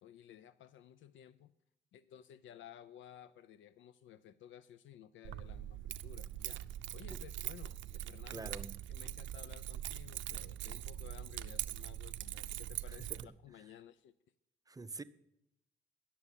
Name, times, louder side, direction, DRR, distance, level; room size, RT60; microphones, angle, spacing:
voice 1, 0.0-1.5 1.9-6.6 6.9-8.5 8.9-14.1, left 10 dB, 75° left, 0.5 m, -56 dB
Keys jangling, 5.2-13.2, right 13 dB, 70° right, 0.5 m, -42 dB
voice 2, 8.3-8.8 12.9-13.3 14.7-15.0, right 3 dB, 20° right, 0.6 m, -46 dB
11.0 x 7.0 x 8.9 m
cardioid pair, 90°, 20 cm